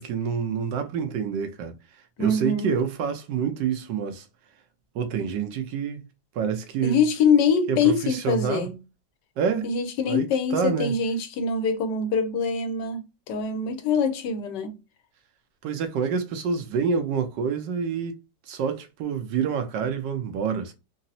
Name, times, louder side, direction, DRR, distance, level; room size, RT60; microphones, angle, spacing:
voice 1, 0.0-1.7 2.2-4.2 4.9-6.0 6.3-7.0 7.7-8.7 9.4-9.7 10.0-10.9 15.6-18.2 18.5-20.7, right 6 dB, 90° right, 1.3 m, -27 dB
voice 2, 2.2-2.7 6.8-8.8 9.6-14.7, left 5 dB, 85° left, 1.3 m, -24 dB
4.0 x 2.0 x 2.6 m
omnidirectional pair, 1.8 m